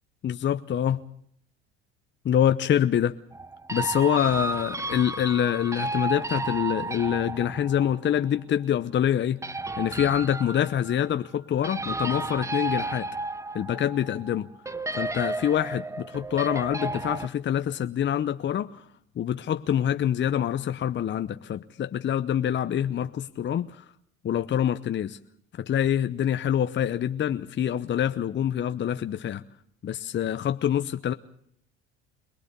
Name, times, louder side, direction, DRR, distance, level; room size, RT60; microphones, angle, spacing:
voice 1, 0.2-1.0 2.2-3.1 3.7-9.4 9.8-13.1 13.5-14.5 15.0-18.8 19.2-23.8 24.2-25.2 25.6-29.4 29.8-31.1, left 10 dB, 40° left, 10 dB, 0.8 m, -26 dB
sound 1, 3.3-8.2 9.4-11.2 11.6-14.4 14.7-17.3, right 3 dB, 10° right, 0.8 m, -33 dB
23.0 x 19.0 x 6.8 m, 0.67 s
supercardioid pair, 80°, 29 cm